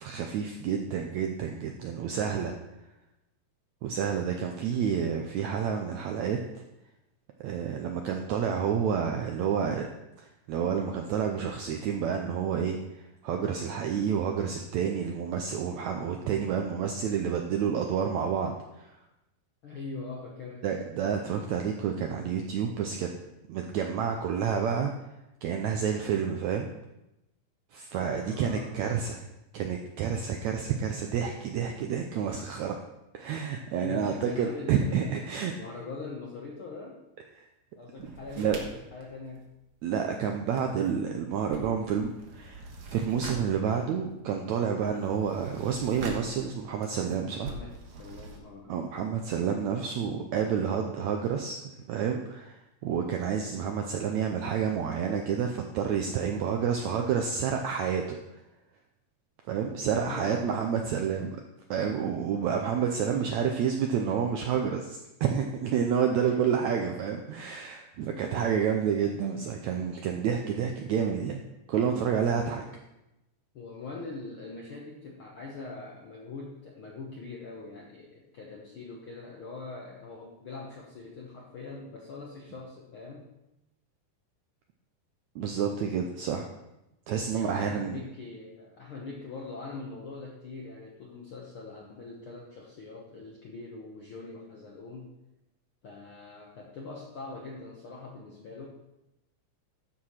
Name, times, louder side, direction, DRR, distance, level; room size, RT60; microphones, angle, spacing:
voice 1, 0.0-2.5 3.8-6.4 7.4-9.9 10.2-18.9 20.6-23.1 23.5-24.9 25.4-26.7 27.7-29.2 29.5-32.8 33.1-35.5 37.4-37.5 38.4-38.6 39.8-42.6 42.9-47.5 48.7-58.2 59.5-61.4 61.7-71.4 71.7-72.6 85.3-86.5 87.1-88.0, right 7 dB, 80° right, 3 dB, 1.6 m, -29 dB
voice 2, 19.6-20.7 28.1-28.9 33.8-37.0 37.8-39.4 47.2-48.7 59.9-60.8 66.1-66.9 72.3-72.7 73.5-83.3 87.3-95.1 95.8-98.7, left 3 dB, 70° left, -2 dB, 1.3 m, -42 dB
sound 1, 38.0-40.1 40.4-48.4, right 2 dB, 60° right, 2.4 m, -44 dB
12.5 x 4.9 x 5.7 m, 0.92 s
omnidirectional pair, 4.0 m